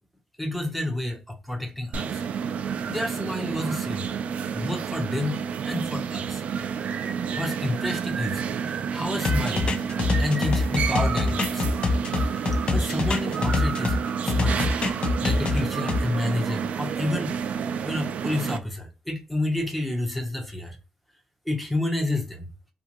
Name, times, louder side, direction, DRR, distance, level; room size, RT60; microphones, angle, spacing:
voice 1, 0.4-2.2 2.9-4.1 4.5-6.4 7.4-9.7 10.2-11.7 12.7-14.0 14.2-14.9 15.2-17.4 17.8-20.8 21.5-22.5, left 1 dB, 5° left, 0.8 m, -30 dB
sound 1, 1.9-18.6, right 7 dB, 65° right, 0.3 m, -30 dB
sound 2, 9.2-14.0 14.3-16.0, left 3 dB, 45° left, 0.4 m, -24 dB
2.5 x 2.4 x 2.9 m
cardioid pair, 80°, 2 cm